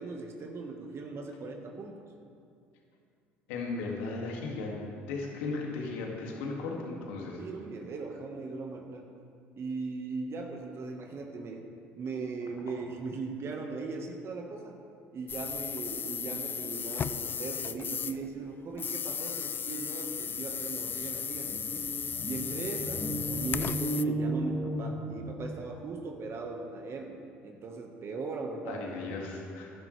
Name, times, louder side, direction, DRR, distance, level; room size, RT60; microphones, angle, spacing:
voice 1, 0.0-2.1 7.4-9.1 9.6-14.8 15.1-21.8 22.2-23.1 23.4-28.8 29.2-29.3, right 4 dB, 45° right, 3 dB, 1.3 m, -39 dB
voice 2, 3.5-7.4 28.7-29.7, left 3 dB, 85° left, -1 dB, 2.2 m, -36 dB
sound 1, 15.3-18.3 18.7-24.0, left 7 dB, 35° left, 0.4 m, -35 dB
sound 2, 20.3-20.4 20.6-25.7, right 1 dB, 10° left, 1.8 m, -35 dB
15.0 x 11.0 x 3.3 m, 2.4 s
hypercardioid pair, 70°, 6 cm